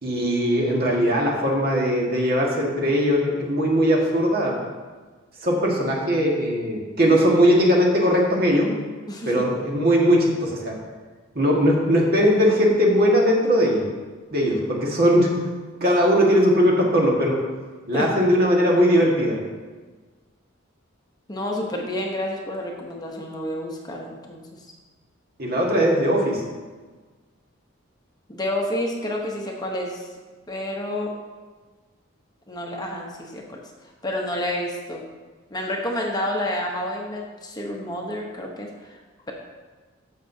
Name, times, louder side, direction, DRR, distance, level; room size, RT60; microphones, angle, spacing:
voice 1, 0.0-4.6 5.4-8.7 9.2-10.8 11.3-13.9 14.3-15.3 15.8-17.4 17.9-19.4 25.4-26.4, equal, 50° right, -2 dB, 1.6 m, -19 dB
voice 2, 9.1-9.4 15.9-16.0 17.9-18.1 21.3-24.4 28.3-30.1 30.5-31.1 32.5-33.6 34.0-35.0 35.5-39.0, left 1 dB, 20° left, 0 dB, 0.9 m, -29 dB
14.0 x 5.9 x 2.7 m, 1.4 s
head